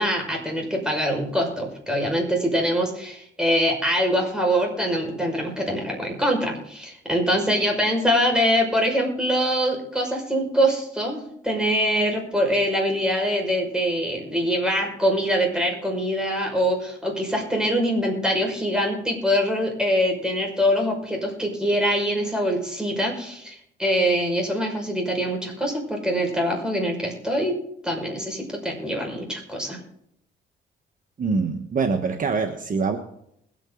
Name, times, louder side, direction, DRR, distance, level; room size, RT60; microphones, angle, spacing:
voice 1, 0.0-27.6 27.8-29.8, equal, 5° right, 1 dB, 5.6 m, -24 dB
voice 2, 31.2-33.0, right 4 dB, 40° right, 5 dB, 1.4 m, -24 dB
21.0 x 9.1 x 3.9 m, 0.74 s
cardioid pair, 90°, 20 cm